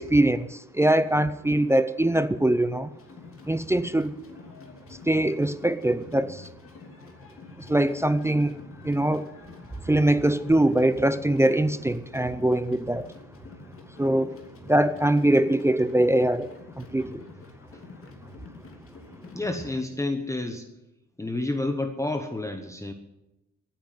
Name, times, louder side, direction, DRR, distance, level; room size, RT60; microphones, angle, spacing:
voice 1, 0.0-2.9 3.5-4.2 5.1-6.5 7.6-8.6 8.8-9.3 9.9-13.1 14.0-14.3 14.6-16.5 16.8-17.2, right 1 dB, 10° right, 0.5 m, -22 dB
sound 1, 2.9-19.8, left 3 dB, 40° left, 3.0 m, -47 dB
voice 2, 19.3-20.7 21.2-22.9, left 2 dB, 10° left, 1.1 m, -30 dB
15.0 x 9.1 x 9.3 m
cardioid pair, 120°, 33 cm